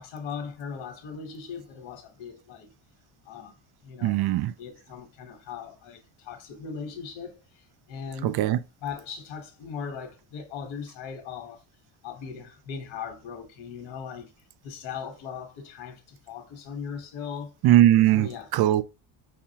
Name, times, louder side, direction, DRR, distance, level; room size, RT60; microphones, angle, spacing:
voice 1, 0.0-2.7 3.2-3.6 3.8-4.3 4.6-8.4 8.8-11.6 12.0-14.3 14.6-17.5 18.1-18.5, left 6 dB, 85° left, 1.2 m, -39 dB
voice 2, 4.0-4.5 8.2-8.6 17.6-18.8, right 13 dB, 55° right, 0.5 m, -20 dB
5.6 x 2.4 x 2.8 m
cardioid pair, 100°, 46 cm